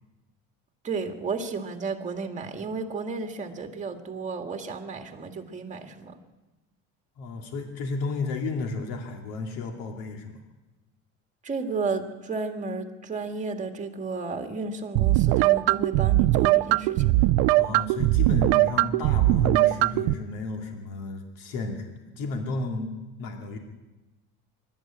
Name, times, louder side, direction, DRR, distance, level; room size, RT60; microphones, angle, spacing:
voice 1, 0.8-6.2 11.4-17.3, right 4 dB, 20° right, 5 dB, 2.0 m, -33 dB
voice 2, 7.2-10.4 17.6-23.6, left 3 dB, 85° left, 3 dB, 2.6 m, -33 dB
sound 1, 14.9-20.1, right 18 dB, 90° right, 0.7 m, -21 dB
24.5 x 12.5 x 8.9 m, 1.1 s
cardioid pair, 160°, 34 cm